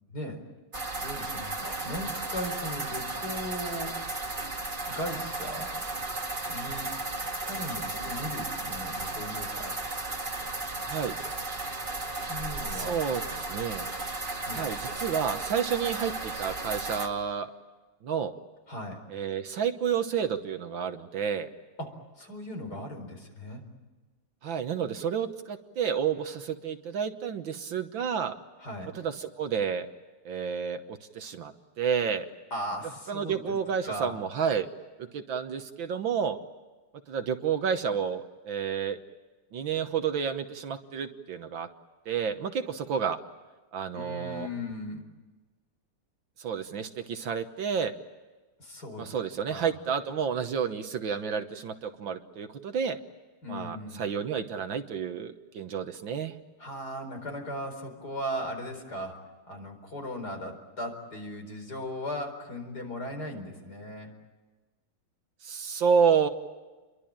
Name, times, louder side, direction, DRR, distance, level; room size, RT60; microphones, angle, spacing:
sound 1, 0.7-17.1, right 2 dB, 25° right, 2.4 m, -34 dB
voice 1, 1.0-3.9 4.9-5.7 6.5-6.9 7.4-9.8 12.3-13.0 14.5-14.7 18.7-19.0 21.8-23.6 28.6-28.9 32.5-33.6 33.8-34.1 43.9-45.0 48.6-49.1 49.5-49.7 53.4-54.1 56.6-59.2 59.5-64.1, equal, 45° left, 4 dB, 5.0 m, -37 dB
voice 2, 12.7-13.2 13.5-13.9 14.5-17.5 18.0-18.3 19.1-21.5 24.4-28.4 28.9-29.9 30.2-32.3 33.1-34.7 35.0-36.4 37.1-39.0 39.5-41.7 42.0-43.2 43.7-44.5 46.4-47.9 49.0-53.0 53.5-56.3 65.4-66.3, right 7 dB, 65° right, 8 dB, 1.8 m, -30 dB
29.0 x 23.0 x 8.8 m, 1.3 s
omnidirectional pair, 2.4 m